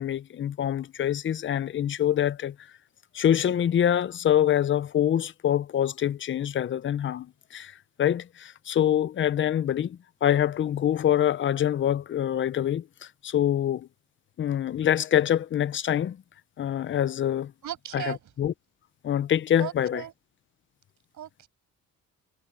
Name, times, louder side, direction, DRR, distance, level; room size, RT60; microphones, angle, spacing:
voice 1, 0.0-2.6 3.1-12.8 13.2-13.9 14.4-16.2 16.6-17.5 17.9-18.5 19.0-20.0, left 10 dB, 35° left, 0.6 m, -25 dB
voice 2, 17.6-18.2 19.6-20.1 21.1-21.5, right 11 dB, 60° right, 6.5 m, -36 dB
cardioid pair, 125°, 33 cm